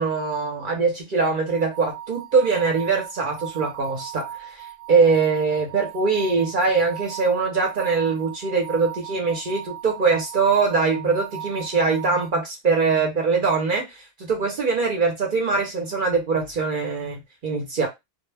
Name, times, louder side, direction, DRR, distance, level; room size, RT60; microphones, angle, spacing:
voice 1, 0.0-4.6 4.9-17.9, right 4 dB, 55° right, 0.8 m, -22 dB
sound 1, 1.5-12.3, right 11 dB, 80° right, 0.9 m, -38 dB
2.1 x 2.0 x 3.1 m
omnidirectional pair, 1.1 m